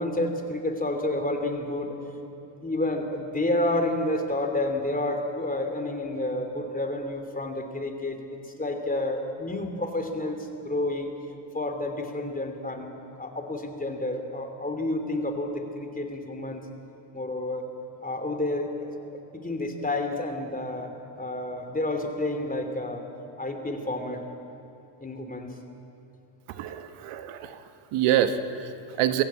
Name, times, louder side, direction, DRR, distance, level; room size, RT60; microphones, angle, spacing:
voice 1, 0.0-2.0 2.6-8.2 8.6-10.4 10.6-11.1 11.5-16.6 17.1-17.7 18.0-19.0 19.3-20.9 21.2-23.0 23.4-24.2 25.0-25.5, left 1 dB, 15° left, 5 dB, 3.0 m, -30 dB
voice 2, 26.5-29.2, right 11 dB, 80° right, 9 dB, 1.3 m, -27 dB
22.5 x 15.5 x 8.7 m, 2.9 s
cardioid pair, 90°, 50 cm